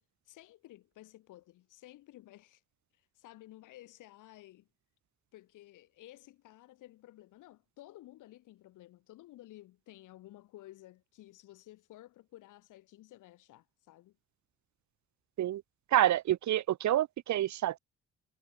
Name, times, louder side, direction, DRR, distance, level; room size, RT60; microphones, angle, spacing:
voice 1, 0.0-2.6 2.9-4.7 5.3-14.2, left 16 dB, 90° left, 7.9 m, -54 dB
voice 2, 15.9-17.8, right 13 dB, 70° right, 1.4 m, -28 dB
cardioid pair, 90°, 30 cm